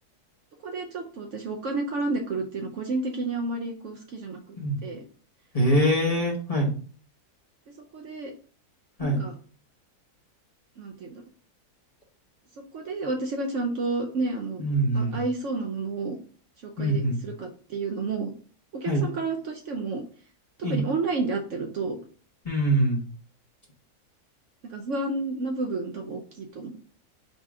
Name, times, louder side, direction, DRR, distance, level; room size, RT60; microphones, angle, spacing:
voice 1, 0.6-4.6 4.8-5.0 7.9-8.3 9.0-9.3 10.8-11.2 12.7-14.6 14.9-16.2 16.6-18.3 18.7-20.0 20.7-22.0 24.7-26.8, right 3 dB, 65° right, 2 dB, 0.8 m, -31 dB
voice 2, 5.5-6.7 9.0-9.2 14.6-15.2 16.8-17.2 18.8-19.1 20.6-20.8 22.4-23.0, right 1 dB, 30° left, -3 dB, 0.8 m, -23 dB
4.0 x 2.4 x 4.6 m, 0.42 s
omnidirectional pair, 1.6 m